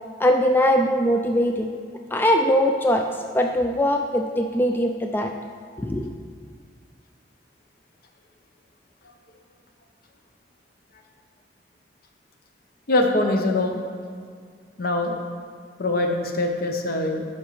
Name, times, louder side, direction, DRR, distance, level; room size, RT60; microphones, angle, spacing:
voice 1, 0.2-1.7 2.1-3.1 3.3-5.3 5.8-6.1, equal, 10° left, 3 dB, 0.3 m, -21 dB
voice 2, 12.9-13.8 14.8-15.2 15.8-17.2, left 2 dB, 55° left, 3 dB, 0.8 m, -23 dB
12.0 x 5.3 x 3.1 m, 2.1 s
head